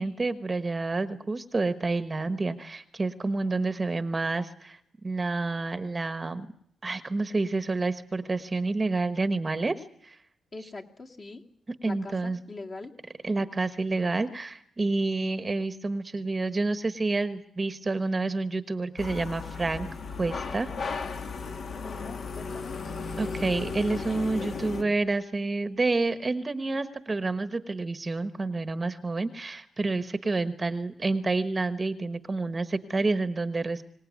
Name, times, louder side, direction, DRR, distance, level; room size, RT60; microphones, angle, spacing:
voice 1, 0.0-6.5 6.8-10.2 11.8-12.4 13.2-19.9 20.2-20.7 23.2-33.8, right 3 dB, 25° right, 10 dB, 1.2 m, -29 dB
voice 2, 10.5-11.4 11.8-12.9 21.8-22.8, left 3 dB, 35° left, 1 dB, 2.5 m, -42 dB
sound 1, 19.0-24.8, left 4 dB, 55° left, 2.2 m, -35 dB
25.0 x 18.0 x 9.4 m, 0.70 s
cardioid pair, 125°, 0 cm